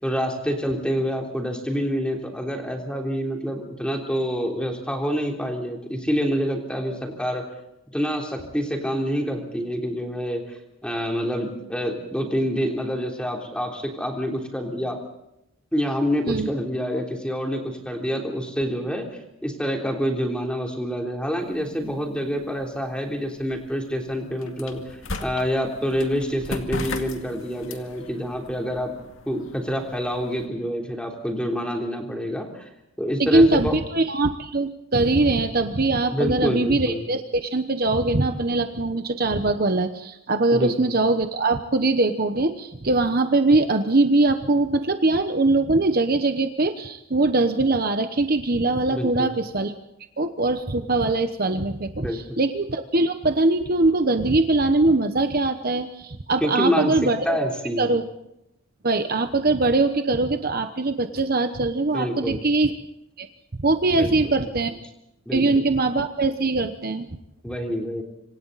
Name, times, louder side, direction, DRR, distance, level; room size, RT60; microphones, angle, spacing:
voice 1, 0.0-7.4 7.9-10.6 10.8-15.0 15.7-19.1 19.4-24.8 25.2-28.9 29.3-32.6 33.0-33.8 36.1-37.0 40.5-40.7 48.9-49.3 52.0-52.4 56.4-58.0 61.9-62.4 63.9-64.3 65.2-65.4 67.4-68.0, equal, 5° left, 1 dB, 3.4 m, -27 dB
sound 1, 21.4-30.5, left 2 dB, 70° left, 2.2 m, -39 dB
voice 2, 33.2-49.7 50.2-57.5 57.8-58.0 58.8-62.7 63.2-63.3 63.6-64.7 65.3-67.1, right 2 dB, 45° right, 8 dB, 1.0 m, -22 dB
26.0 x 26.0 x 4.1 m, 0.84 s
head